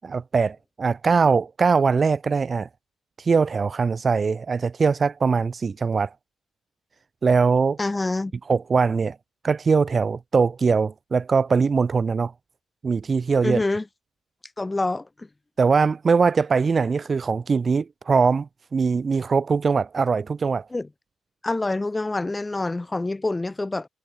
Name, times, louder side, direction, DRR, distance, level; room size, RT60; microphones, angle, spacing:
voice 1, 0.0-2.7 3.2-6.1 7.2-7.8 8.5-9.2 9.4-12.3 12.8-13.6 15.6-20.7, right 5 dB, 35° right, 2.0 m, -21 dB
voice 2, 7.8-8.3 13.4-13.8 14.6-15.3 20.7-20.9 21.4-23.9, left 2 dB, 15° left, 6.3 m, -26 dB
cardioid pair, 90°, 0 cm